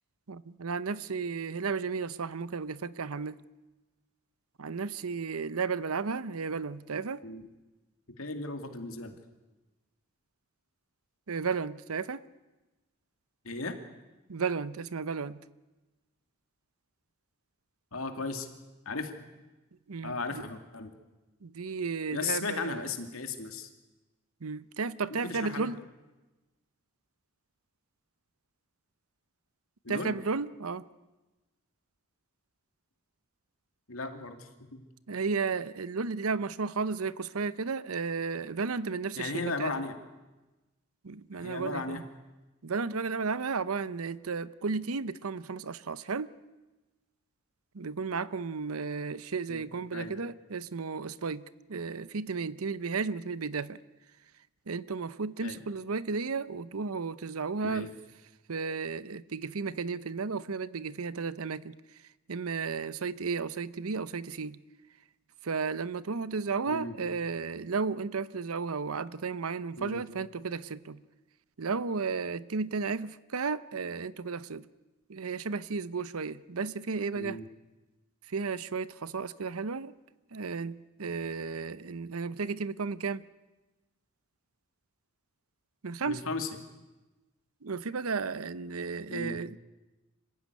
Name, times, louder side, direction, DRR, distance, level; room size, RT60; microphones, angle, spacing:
voice 1, 0.3-3.4 4.6-7.3 11.3-12.2 14.3-15.4 19.9-20.4 21.4-22.9 24.4-25.8 29.9-30.8 35.1-39.7 41.0-42.0 42.6-46.3 47.7-51.4 51.7-53.8 54.7-57.9 58.5-61.8 62.3-64.6 65.4-71.0 71.6-74.7 75.1-77.4 78.3-79.9 80.3-83.2 85.8-86.2 87.6-89.6, right 4 dB, 85° right, 16 dB, 0.8 m, -33 dB
voice 2, 8.2-9.2 13.4-13.7 17.9-18.5 18.9-19.1 20.0-20.9 22.1-23.7 25.3-25.7 29.8-30.1 33.9-34.8 39.2-39.9 41.4-42.0 49.5-49.6 49.9-50.2 55.4-55.6 57.6-57.9 66.7-66.9 69.8-70.0 77.2-77.4 86.1-86.5 89.1-89.4, left 3 dB, 75° left, 6 dB, 2.5 m, -36 dB
26.0 x 15.5 x 9.7 m, 1.1 s
head